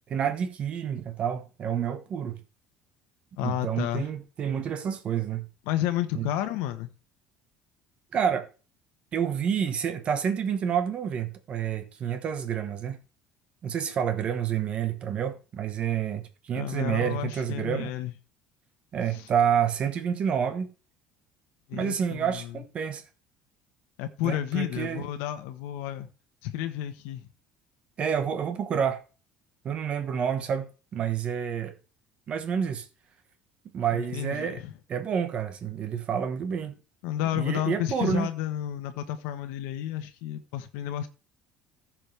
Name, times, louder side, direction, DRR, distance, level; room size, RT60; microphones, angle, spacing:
voice 1, 0.1-2.4 3.4-5.5 6.1-6.3 8.1-8.5 9.1-13.0 13.6-17.9 18.9-20.7 21.7-23.0 24.2-25.0 28.0-29.0 29.6-31.7 32.3-32.9 33.7-34.6 34.9-36.8 37.3-38.3, right 8 dB, 35° right, 1.2 m, -29 dB
voice 2, 3.4-4.1 5.7-6.9 16.5-18.1 19.1-19.3 21.7-22.5 24.0-26.1 26.4-27.2 33.9-34.7 37.0-41.1, left 12 dB, 90° left, 1.2 m, -31 dB
15.0 x 6.2 x 3.4 m
cardioid pair, 170°, 4 cm